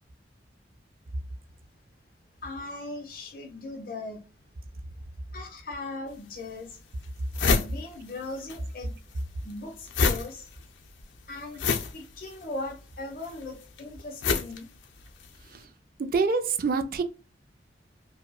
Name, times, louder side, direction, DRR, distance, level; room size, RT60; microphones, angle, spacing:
voice 1, 2.4-4.2 5.3-6.8 7.6-9.0 9.4-10.5 11.3-11.6 11.9-14.7, left 2 dB, 50° left, 1.0 m, -39 dB
sound 1, 6.1-6.2 6.7-6.8 7.0-8.6 8.8-15.4, left 4 dB, 80° left, 0.5 m, -29 dB
voice 2, 16.0-17.0, right 4 dB, 50° right, 0.4 m, -25 dB
4.7 x 2.1 x 2.3 m
head